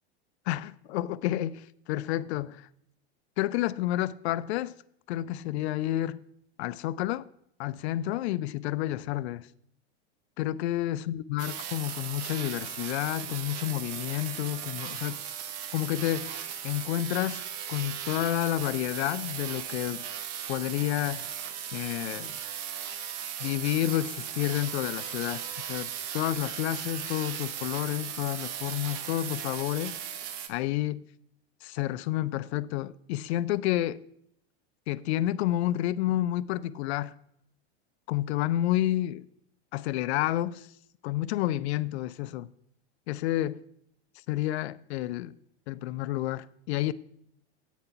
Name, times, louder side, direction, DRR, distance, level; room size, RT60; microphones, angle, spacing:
voice 1, 0.5-2.7 3.4-4.7 5.1-6.2 6.6-7.2 7.6-9.5 10.4-15.2 15.7-16.4 16.6-17.4 17.7-20.0 20.5-21.3 21.7-22.4 23.4-30.0 30.5-31.0 31.6-34.0 34.9-37.2 38.1-39.2 39.7-40.7 41.0-42.5 43.1-43.6 44.3-45.3 45.7-46.9, left 14 dB, 70° left, 0.5 m, -30 dB
sound 1, 11.4-30.5, right 9 dB, 50° right, 1.0 m, -37 dB
8.2 x 5.8 x 5.6 m
hypercardioid pair, 105°, 34 cm